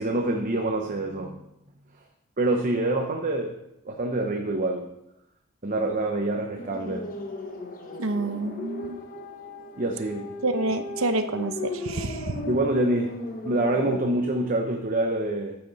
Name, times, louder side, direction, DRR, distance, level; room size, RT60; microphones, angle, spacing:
voice 1, 0.0-1.4 2.4-3.5 3.8-4.9 5.6-7.1 9.8-10.3 12.5-13.2 13.4-15.6, right 2 dB, 35° right, 2 dB, 0.9 m, -26 dB
sound 1, 6.6-14.1, left 2 dB, 40° left, 1.1 m, -36 dB
voice 2, 8.0-9.0 10.4-12.5, right 2 dB, 65° right, 9 dB, 0.9 m, -28 dB
13.5 x 7.9 x 4.1 m, 0.86 s
head